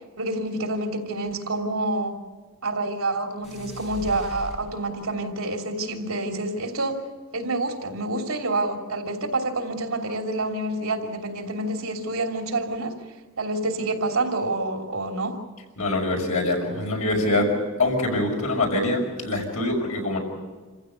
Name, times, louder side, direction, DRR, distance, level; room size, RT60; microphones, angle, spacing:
voice 1, 0.2-2.1 2.6-7.0 7.3-12.9 13.4-15.3, right 2 dB, 75° right, 2 dB, 3.1 m, -28 dB
sound 1, 3.4-5.2, left 1 dB, 30° left, 7.6 m, -39 dB
voice 2, 15.8-17.5 17.8-20.2, left 2 dB, 75° left, 1 dB, 6.2 m, -24 dB
27.5 x 15.5 x 8.0 m, 1.3 s
head